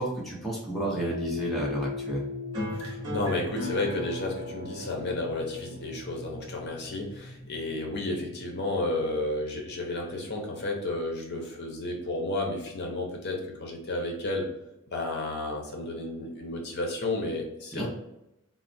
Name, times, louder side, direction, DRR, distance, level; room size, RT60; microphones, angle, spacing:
voice 1, 0.0-2.2 17.7-17.9, right 1 dB, ahead, -5 dB, 0.7 m, -31 dB
sound 1, 0.8-9.3, left 4 dB, 55° right, 0.8 m, -40 dB
sound 2, 2.5-7.5, left 1 dB, 20° right, 1.3 m, -39 dB
voice 2, 2.8-14.5 14.9-17.9, left 2 dB, 50° left, 0 dB, 0.7 m, -32 dB
4.0 x 2.0 x 2.6 m, 0.88 s
head